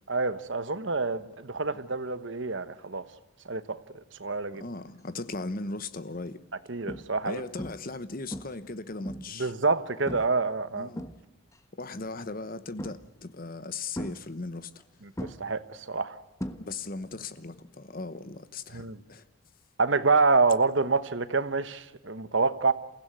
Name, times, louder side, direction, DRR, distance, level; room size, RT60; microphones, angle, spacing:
voice 1, 0.1-3.0 3.4-3.8 4.2-4.6 6.7-7.4 9.4-10.9 15.0-16.2 18.7-19.0 19.8-22.7, right 4 dB, 60° right, 1.1 m, -27 dB
voice 2, 4.5-6.4 7.2-9.5 10.7-11.0 11.7-14.7 16.6-19.2, left 3 dB, 40° left, 1.1 m, -38 dB
sound 1, 5.3-5.6 6.2-6.3 6.9-7.3 7.6-8.0 8.3-9.5 10.1-10.4 10.7-11.6 12.8-13.3 14.0-14.8 15.2-17.1 17.3-17.7 19.8-19.9, equal, 15° left, 1.2 m, -39 dB
28.5 x 16.0 x 9.2 m
head